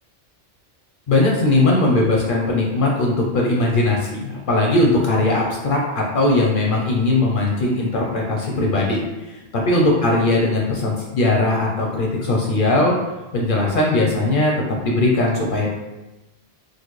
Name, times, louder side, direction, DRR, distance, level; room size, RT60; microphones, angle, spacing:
voice 1, 1.1-9.4 9.7-13.0 13.3-14.5 14.8-15.7, left 2 dB, 60° left, -2 dB, 0.6 m, -19 dB
3.7 x 2.2 x 3.1 m, 1.1 s
omnidirectional pair, 1.2 m